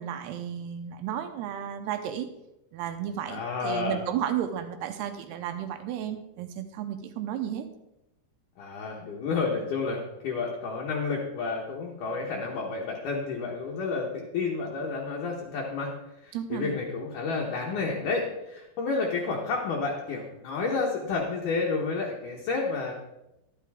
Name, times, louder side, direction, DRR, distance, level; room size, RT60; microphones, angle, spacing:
voice 1, 0.0-2.3 2.7-7.7 16.3-16.7, right 10 dB, 80° right, 8 dB, 2.7 m, -33 dB
voice 2, 3.3-4.0 8.6-15.9 16.2-22.9, left 4 dB, 65° left, -2 dB, 2.3 m, -30 dB
11.5 x 11.0 x 3.5 m, 0.91 s
omnidirectional pair, 4.8 m